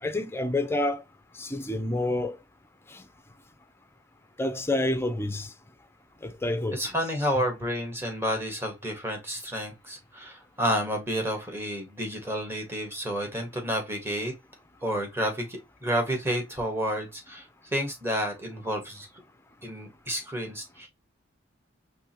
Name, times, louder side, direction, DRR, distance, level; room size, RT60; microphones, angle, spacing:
voice 1, 0.0-1.0 1.3-2.4 2.9-3.0 4.4-5.5 6.2-6.8, left 1 dB, 10° left, 0.7 m, -28 dB
voice 2, 6.7-14.3 14.8-17.5 17.7-19.1 19.6-20.9, equal, 10° right, 1.8 m, -30 dB
5.3 x 3.4 x 2.9 m
head